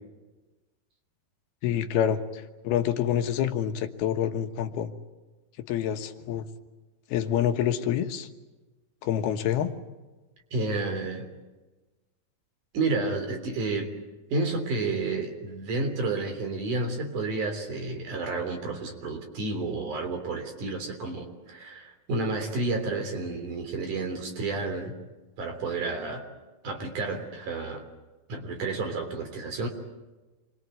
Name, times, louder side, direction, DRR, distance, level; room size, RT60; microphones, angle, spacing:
voice 1, 1.6-4.9 5.7-6.4 7.1-8.3 9.0-9.7, left 10 dB, 80° left, 7 dB, 3.2 m, -27 dB
voice 2, 10.5-11.3 12.7-13.9 14.3-24.9 25.4-26.3 26.6-27.8 28.3-29.7, right 3 dB, 55° right, 5 dB, 4.8 m, -30 dB
27.5 x 22.0 x 9.3 m, 1.2 s
omnidirectional pair, 4.4 m